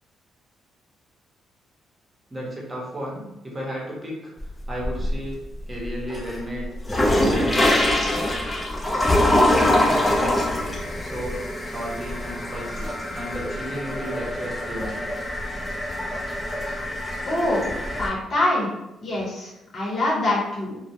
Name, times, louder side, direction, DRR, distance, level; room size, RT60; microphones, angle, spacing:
voice 1, 2.3-5.4 5.7-6.7 7.3-7.9 8.9-10.4 11.0-15.0, equal, 20° right, -4 dB, 0.8 m, -34 dB
sound 1, 4.4-5.3 5.8-18.1, left 1 dB, 20° left, 0.5 m, -24 dB
voice 2, 17.3-17.7 18.0-18.7 19.0-20.8, left 1 dB, 45° left, -5 dB, 0.8 m, -24 dB
2.2 x 2.1 x 2.7 m, 0.93 s
cardioid pair, 90°, 0 cm